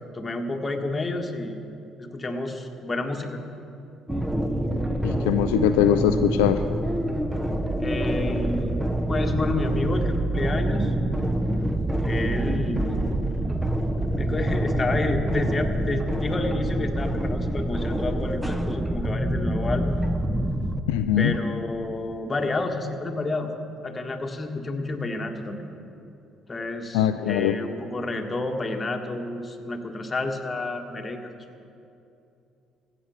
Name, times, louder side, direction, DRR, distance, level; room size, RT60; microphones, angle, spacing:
voice 1, 0.1-1.6 2.1-3.4 7.8-10.9 12.0-13.1 14.2-19.9 21.2-23.5 23.8-25.7 26.5-31.3, left 2 dB, 30° left, 4 dB, 1.5 m, -30 dB
sound 1, 4.1-20.8, right 1 dB, 10° right, 0.9 m, -26 dB
voice 2, 5.0-6.6 20.9-21.4 26.9-27.6, left 10 dB, 80° left, 9 dB, 0.4 m, -22 dB
15.0 x 8.3 x 5.7 m, 2.7 s
hypercardioid pair, 55°, 0 cm